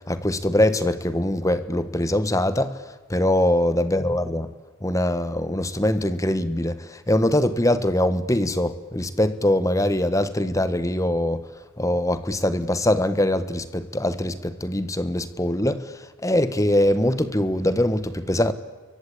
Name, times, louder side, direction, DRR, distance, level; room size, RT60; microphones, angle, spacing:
voice 1, 0.1-2.8 3.1-4.5 4.8-11.4 11.8-18.5, left 1 dB, 15° left, 1.3 m, -22 dB
28.0 x 23.5 x 8.8 m
head